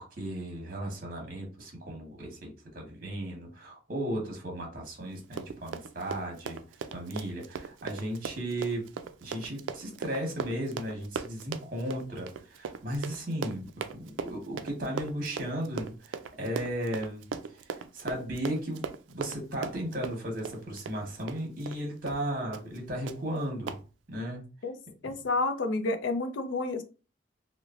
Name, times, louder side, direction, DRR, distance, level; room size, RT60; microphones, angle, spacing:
voice 1, 0.0-6.6 6.9-8.8 9.2-17.2 17.5-17.6 17.9-18.8 19.1-23.8 24.1-24.4 25.0-25.2, right 1 dB, 50° right, 0 dB, 1.0 m, -35 dB
Run, 5.2-21.8 22.1-22.2 22.5-22.8 23.1-23.2 23.7-23.8, right 6 dB, 90° right, 0.3 m, -38 dB
voice 2, 25.0-26.8, left 3 dB, 80° left, 8 dB, 0.5 m, -30 dB
3.1 x 2.1 x 2.4 m, 0.33 s
head